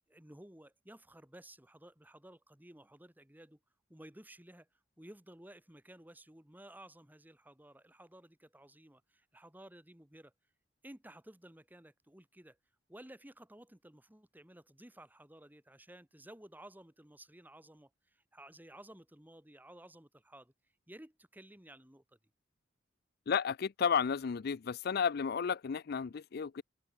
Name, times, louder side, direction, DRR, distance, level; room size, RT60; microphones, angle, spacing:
voice 1, 0.1-3.6 3.9-4.7 5.0-10.3 10.8-12.6 12.9-20.5 20.9-22.2, right 1 dB, 10° right, 1.6 m, -55 dB
voice 2, 23.3-26.6, left 6 dB, 55° left, 0.4 m, -32 dB
head